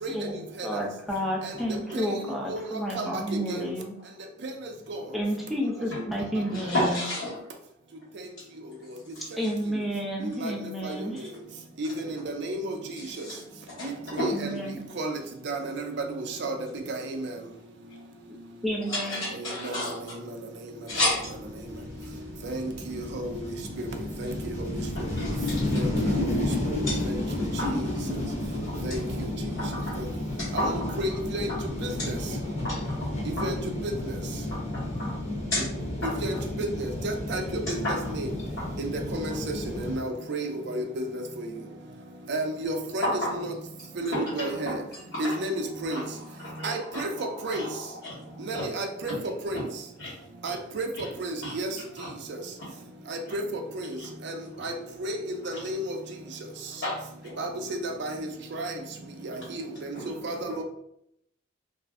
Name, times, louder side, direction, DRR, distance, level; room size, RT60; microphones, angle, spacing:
voice 1, 0.6-3.9 5.1-7.0 9.4-11.3 14.3-14.8 18.6-19.2, equal, ahead, -3 dB, 0.6 m, -31 dB
voice 2, 6.5-7.4 13.0-13.4 13.8-14.3 18.9-20.2 20.9-21.3 24.9-26.0 26.9-27.0 27.6-27.7 29.6-30.0 30.4-31.0 32.0-32.1 32.6-32.8 33.4-33.5 34.5-35.1 35.5-35.6 36.0-36.1 37.8-38.0 38.6-38.7 43.0-43.3 44.1-44.8 45.1-45.4 45.9-46.0 46.4-47.0 47.5-48.3 48.5-48.7 49.5-49.6 50.0-50.1 50.4-50.5 51.4-51.5 52.0-52.1 56.8-57.0 57.2-57.3 59.9-60.1, left 1 dB, 75° left, -10 dB, 1.1 m, -31 dB
voice 3, 11.8-12.7 14.1-14.3 15.0-15.1 15.5-15.9 16.4-16.5 16.9-17.3 19.6-19.7 22.4-23.3 24.2-24.3 25.7-25.9 26.2-26.3 26.7-26.8 27.0-27.2 27.7-27.8 28.8-29.0 30.5-31.5 33.4-33.6 33.8-33.9 36.2-37.4 37.7-37.8 38.1-38.3 38.8-39.3 39.9-41.2 42.3-43.5 44.0-44.8 45.2-45.5 45.8-46.0 46.6-47.1 47.4-47.6 48.5-49.1 49.4-49.6 50.4-50.9 51.2-51.7 53.3-53.4 54.3-54.4 54.6-54.7 55.0-55.2 55.5-55.9 57.4-57.5 58.0-58.2 58.5-58.7 59.8-59.9 60.2-60.6, right 1 dB, 60° right, 4 dB, 0.5 m, -31 dB
sound 1, 20.9-40.0, left 1 dB, 35° left, 0.9 m, -32 dB
2.5 x 2.1 x 3.4 m, 0.76 s
head